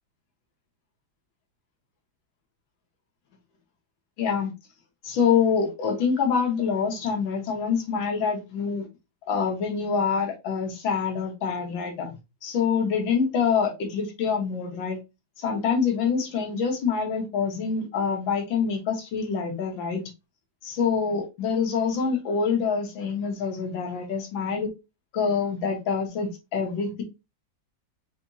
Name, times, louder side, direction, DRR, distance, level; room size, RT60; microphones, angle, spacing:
voice 1, 4.2-4.5 5.0-8.9 9.3-12.1 12.4-15.0 15.4-20.1 20.6-24.7 25.1-27.0, left 6 dB, 75° left, 1.8 m, -26 dB
5.1 x 2.9 x 2.6 m
omnidirectional pair, 2.1 m